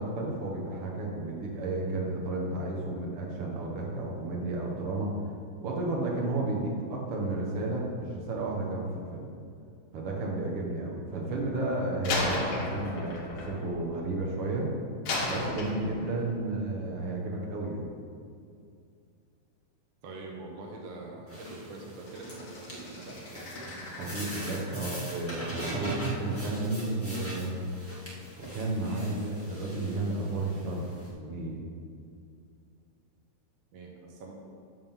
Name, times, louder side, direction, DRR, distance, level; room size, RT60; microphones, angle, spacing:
voice 1, 0.0-5.2 5.6-9.3 9.9-14.7 15.3-17.9 23.8-27.6 28.4-30.9 31.2-31.6, right 2 dB, 55° right, -2 dB, 1.8 m, -32 dB
Slam, 12.0-14.5 15.1-16.3, left 2 dB, 80° left, 3.0 m, -33 dB
voice 2, 20.0-23.2 33.7-34.3, right 2 dB, 75° right, -1 dB, 1.1 m, -44 dB
sound 1, 21.3-31.1, right 2 dB, 5° left, 1.1 m, -40 dB
sound 2, 22.1-25.6 25.8-26.6 28.4-28.6, left 2 dB, 60° left, 3.1 m, -47 dB
10.5 x 3.8 x 7.4 m, 2.4 s
omnidirectional pair, 3.7 m